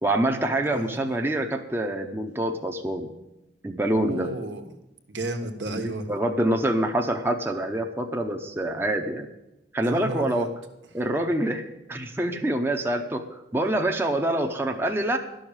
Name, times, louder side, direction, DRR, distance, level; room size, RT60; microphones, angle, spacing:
voice 1, 0.0-3.1 3.6-4.3 5.7-9.3 9.7-10.5 10.9-13.3 13.5-15.2, right 1 dB, 10° right, 4 dB, 0.7 m, -26 dB
voice 2, 0.6-0.9 4.0-4.6 5.1-6.1 9.8-10.5, right 1 dB, 75° right, 5 dB, 1.4 m, -32 dB
11.5 x 6.4 x 8.8 m, 0.95 s
head